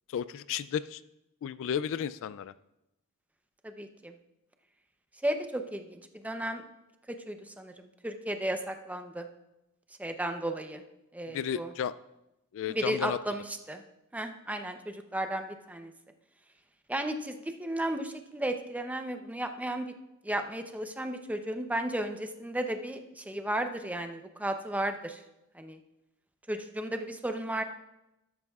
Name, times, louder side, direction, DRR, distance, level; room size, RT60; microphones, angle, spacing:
voice 1, 0.1-1.0 1.4-2.5 11.3-11.9 12.5-13.2, left 8 dB, 60° left, 16 dB, 0.3 m, -33 dB
voice 2, 3.6-4.1 5.2-6.6 7.1-9.3 10.0-10.8 11.1-11.7 12.7-13.8 14.1-15.9 16.9-19.9 20.2-25.2 25.5-25.8 26.5-27.6, right 1 dB, 5° right, 6 dB, 0.7 m, -34 dB
13.5 x 12.0 x 2.4 m, 0.91 s
head